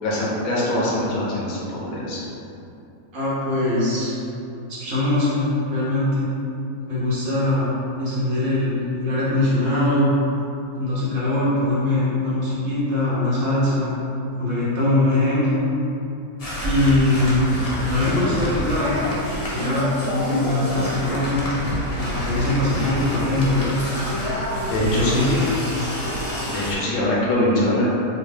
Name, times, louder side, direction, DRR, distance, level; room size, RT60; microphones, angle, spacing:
voice 1, 0.0-2.2 24.6-25.2 26.5-28.0, left 1 dB, 75° left, -6 dB, 1.3 m, -23 dB
voice 2, 3.1-4.1 4.7-6.3 6.9-7.7 8.0-10.1 10.8-13.9 14.4-15.6 16.6-17.6 17.9-19.0 19.5-21.4 22.0-23.8 24.8-25.4, left 1 dB, 70° right, -9 dB, 1.5 m, -22 dB
sound 1, 16.4-26.7, equal, 45° left, 0.5 m, -27 dB
4.4 x 2.2 x 3.3 m, 2.8 s
omnidirectional pair, 1.5 m